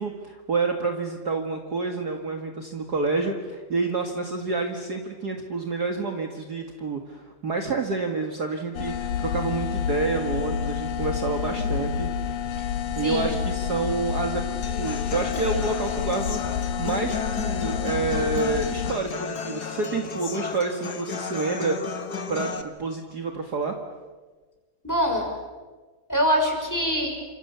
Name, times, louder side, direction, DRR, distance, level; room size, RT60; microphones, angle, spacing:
voice 1, 0.0-12.1 12.9-14.5 14.8-22.0 22.3-23.8, right 4 dB, 40° right, 3 dB, 1.4 m, -28 dB
sound 1, 8.7-18.9, left 8 dB, 60° left, 2.3 m, -29 dB
voice 2, 11.5-11.8 12.6-12.7 13.0-13.4 24.8-25.3 26.1-27.1, equal, 5° left, 1 dB, 6.0 m, -24 dB
Human voice / Acoustic guitar, 14.6-22.6, left 6 dB, 75° left, 0.9 m, -34 dB
30.0 x 27.0 x 7.0 m, 1.3 s
omnidirectional pair, 4.5 m